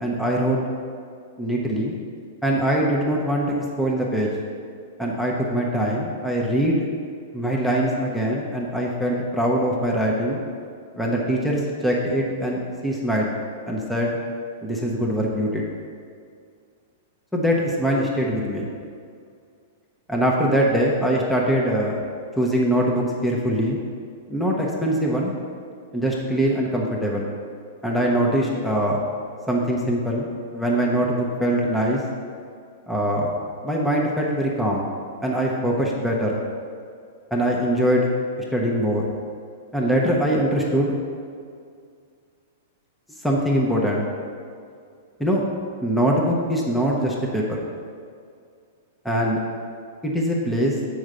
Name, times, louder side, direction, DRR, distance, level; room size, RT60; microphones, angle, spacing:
voice 1, 0.0-0.6 1.4-1.9 2.4-3.5 3.8-4.3 5.0-6.9 7.3-10.4 10.9-13.3 13.7-14.1 14.6-15.6 17.3-18.7 20.1-22.0 22.4-23.8 24.3-25.3 25.9-27.3 27.8-29.0 29.5-32.0 32.9-33.3 33.6-34.9 35.2-36.4 37.3-38.1 38.5-39.0 39.7-40.9 43.2-44.0 45.2-45.4 45.8-47.6 49.0-49.4 50.0-50.7, equal, 5° left, -3 dB, 1.0 m, -22 dB
6.2 x 4.8 x 6.6 m, 2.3 s
figure-of-eight pair, 105°, 0 cm